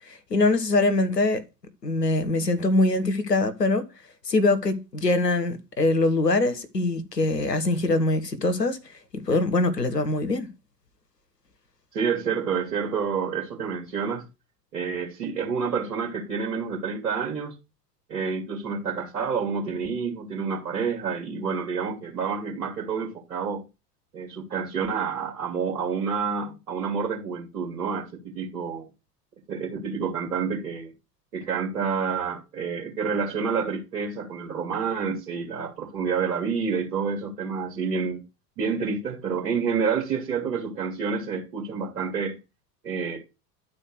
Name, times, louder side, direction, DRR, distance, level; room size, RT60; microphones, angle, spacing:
voice 1, 0.1-1.4 1.8-3.9 4.2-8.8 9.1-10.5, left 2 dB, 90° left, 1.3 m, -23 dB
voice 2, 11.9-14.2 14.7-17.5 18.1-23.6 24.1-28.9 29.5-30.9 31.3-38.2 38.6-42.4 42.8-43.2, right 6 dB, 65° right, 2.3 m, -28 dB
11.0 x 4.3 x 6.1 m
figure-of-eight pair, 75°, 47 cm